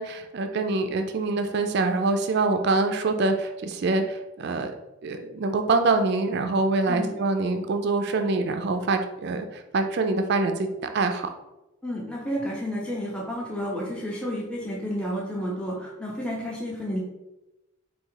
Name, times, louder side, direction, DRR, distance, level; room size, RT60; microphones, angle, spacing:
voice 1, 0.0-4.7 5.0-11.3, right 3 dB, 50° right, 6 dB, 0.3 m, -25 dB
voice 2, 11.8-17.0, equal, 5° left, -4 dB, 0.7 m, -31 dB
4.1 x 2.7 x 3.8 m, 1.0 s
head